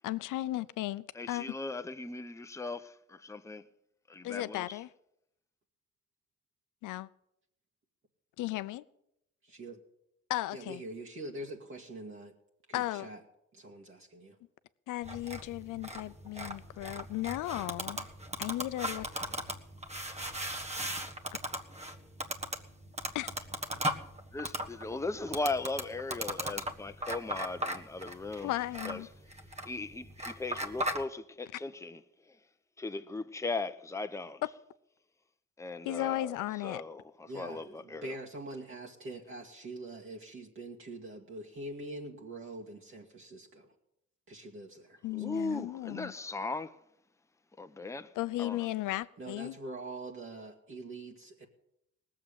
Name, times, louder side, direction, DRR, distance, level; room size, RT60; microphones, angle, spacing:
voice 1, 0.0-1.6 4.2-4.9 6.8-7.1 8.4-8.8 10.3-10.8 12.7-13.1 14.9-18.0 18.4-19.1 23.2-23.3 28.4-29.1 35.8-36.8 45.0-46.1 48.2-49.6, left 16 dB, 90° left, 0.6 m, -35 dB
voice 2, 1.1-3.7 4.1-4.8 24.3-28.5 28.8-29.1 29.6-32.4 32.8-34.4 35.6-38.1 45.1-46.8 47.6-48.7, left 3 dB, 10° left, 0.8 m, -38 dB
voice 3, 9.4-9.8 10.5-12.3 12.7-13.2 13.5-14.4 37.3-43.7 44.3-45.6 49.2-51.5, right 2 dB, 40° right, 2.0 m, -44 dB
sound 1, 15.0-31.0, right 1 dB, 20° right, 1.4 m, -38 dB
18.5 x 7.7 x 8.9 m
cardioid pair, 90°, 30 cm